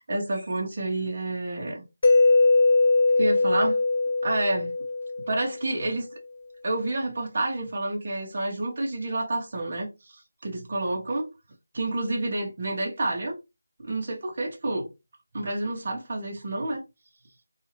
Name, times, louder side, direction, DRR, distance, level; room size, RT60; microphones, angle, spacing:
voice 1, 0.0-1.8 3.2-3.8 4.2-4.7 5.3-6.1 6.6-11.3 11.7-13.4 13.8-14.9 15.3-16.8, right 2 dB, 40° right, 1.0 m, -29 dB
Mallet percussion, 2.0-5.8, left 3 dB, 45° left, 0.4 m, -21 dB
2.6 x 2.4 x 3.2 m
figure-of-eight pair, 170°, 0 cm